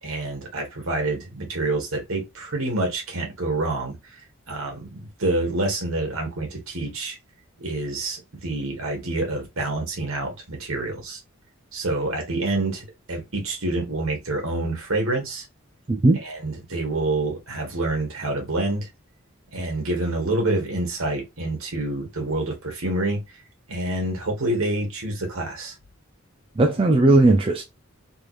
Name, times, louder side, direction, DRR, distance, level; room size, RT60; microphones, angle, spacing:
voice 1, 0.0-4.0 4.5-7.2 7.6-11.2 11.7-15.4 16.2-18.9 19.5-23.2 23.7-25.7, right 2 dB, 80° right, 1.7 m, -27 dB
voice 2, 15.9-16.2 26.6-27.6, right 2 dB, 25° right, 0.4 m, -17 dB
3.5 x 3.2 x 2.5 m
head